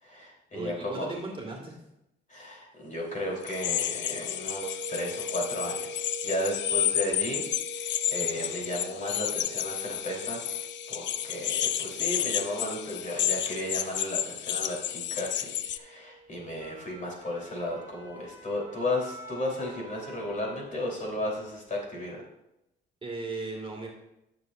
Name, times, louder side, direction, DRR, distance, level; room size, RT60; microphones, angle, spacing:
voice 1, 0.0-1.1 2.3-7.4 7.7-10.6 10.9-22.2, left 1 dB, 40° left, -2 dB, 3.7 m, -34 dB
voice 2, 0.5-1.8 23.0-23.9, right 3 dB, 25° right, 0 dB, 2.1 m, -37 dB
sound 1, 3.4-15.8, left 11 dB, 65° left, 0.5 m, -31 dB
sound 2, 4.6-19.6, right 2 dB, 75° right, 1.1 m, -45 dB
sound 3, 16.3-21.1 21.5-21.7, right 1 dB, 10° right, 3.6 m, -48 dB
14.0 x 7.0 x 2.6 m, 0.87 s
cardioid pair, 90°, 20 cm